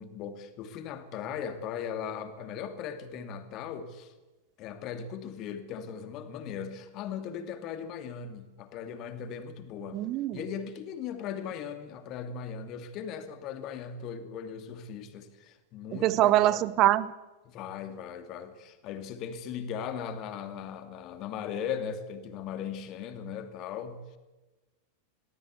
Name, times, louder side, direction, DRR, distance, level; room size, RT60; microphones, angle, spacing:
voice 1, 0.0-4.1 4.6-10.1 10.3-16.7 17.4-24.0, left 7 dB, 40° left, 9 dB, 2.5 m, -38 dB
voice 2, 9.9-10.4 16.0-17.1, right 14 dB, 35° right, 18 dB, 0.8 m, -23 dB
22.5 x 18.0 x 8.2 m, 1.1 s
figure-of-eight pair, 90°, 0 cm